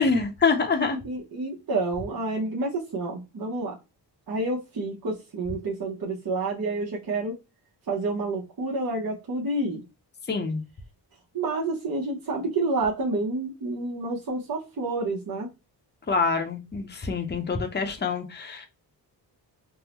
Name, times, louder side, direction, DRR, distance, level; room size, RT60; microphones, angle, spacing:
voice 1, 0.0-1.0 10.3-10.6 16.1-18.7, left 4 dB, 25° left, 0.6 m, -25 dB
voice 2, 0.9-3.8 4.3-7.3 7.9-9.8 11.3-15.5, right 2 dB, 50° right, 0.9 m, -29 dB
3.6 x 2.1 x 2.9 m
cardioid pair, 75°, 43 cm